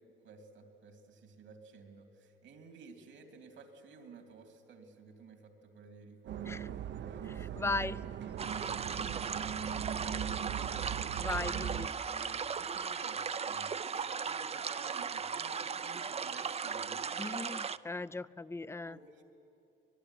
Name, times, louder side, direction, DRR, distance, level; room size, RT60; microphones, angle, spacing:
voice 1, 0.2-7.7 8.7-10.4 11.4-17.4 18.9-19.2, right 4 dB, 80° right, 4 dB, 2.9 m, -55 dB
sound 1, 6.3-11.9, right 9 dB, 65° right, 0.8 m, -39 dB
voice 2, 7.3-8.0 11.2-11.9 17.2-19.0, left 3 dB, 15° left, 18 dB, 0.5 m, -37 dB
sound 2, 8.4-17.8, right 6 dB, 30° right, 0.6 m, -37 dB
25.0 x 21.0 x 10.0 m, 2.7 s
cardioid pair, 90°, 20 cm